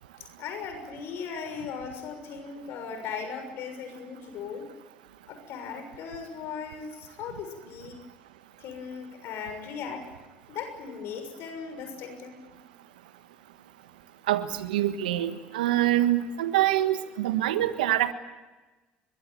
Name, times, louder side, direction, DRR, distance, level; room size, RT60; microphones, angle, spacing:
voice 1, 0.4-4.6 5.3-8.0 8.6-10.1 10.5-12.3, left 6 dB, 60° left, 6 dB, 6.5 m, -38 dB
voice 2, 14.3-18.1, right 13 dB, 80° right, 11 dB, 1.4 m, -25 dB
22.5 x 22.0 x 9.2 m, 1.2 s
hypercardioid pair, 65°, 4 cm